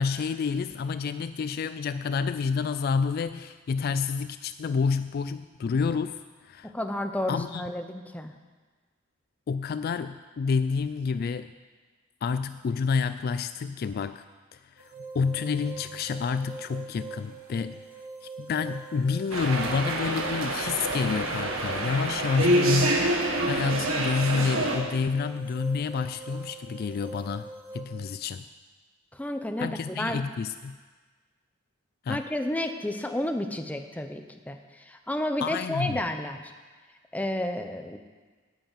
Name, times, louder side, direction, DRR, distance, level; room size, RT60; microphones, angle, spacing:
voice 1, 0.0-6.7 7.3-7.6 9.5-11.5 12.2-14.2 14.8-17.8 18.2-28.4 29.6-30.8 32.0-32.2 35.4-36.0, left 5 dB, 45° left, 12 dB, 0.3 m, -29 dB
voice 2, 6.6-8.3 29.1-29.7 30.0-30.2 32.1-36.4 37.1-38.0, left 1 dB, 5° left, 6 dB, 0.7 m, -31 dB
sound 1, 14.8-27.8, right 3 dB, 40° right, 2.4 m, -43 dB
sound 2, 19.3-24.8, right 1 dB, 80° right, 1.6 m, -27 dB
9.2 x 8.1 x 8.9 m, 1.4 s
head